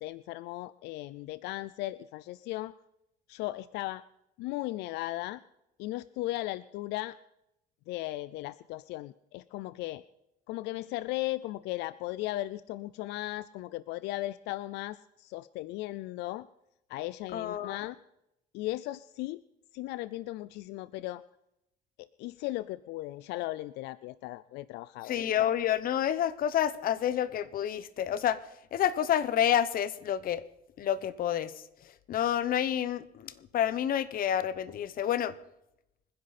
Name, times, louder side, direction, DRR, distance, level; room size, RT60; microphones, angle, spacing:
voice 1, 0.0-2.7 3.3-4.0 4.4-5.4 5.8-7.2 7.9-10.0 10.5-16.5 16.9-18.0 18.5-19.4 19.7-21.2 22.0-25.2, left 17 dB, 90° left, 17 dB, 0.4 m, -37 dB
voice 2, 17.3-17.8 25.0-28.4 28.7-30.4 30.8-31.5 32.1-35.3, left 10 dB, 60° left, 15 dB, 1.0 m, -29 dB
25.5 x 10.5 x 4.2 m, 0.83 s
cardioid pair, 110°, 17 cm